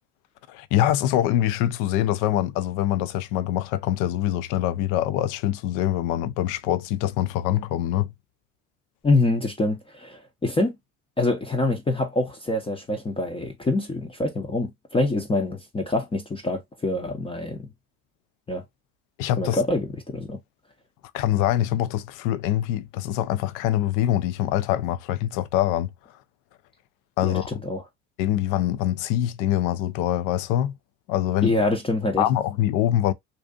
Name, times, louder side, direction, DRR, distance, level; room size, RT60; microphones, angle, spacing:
voice 1, 0.5-8.1 19.2-19.6 21.1-25.9 27.2-27.6 28.2-30.8 31.1-31.5 32.2-33.1, left 12 dB, 60° left, 0.4 m, -24 dB
voice 2, 9.0-10.8 11.2-17.6 18.5-18.6 19.4-20.4 27.2-27.8 31.4-32.2, left 2 dB, 15° left, 0.6 m, -25 dB
2.6 x 2.4 x 2.3 m
hypercardioid pair, 70°, 36 cm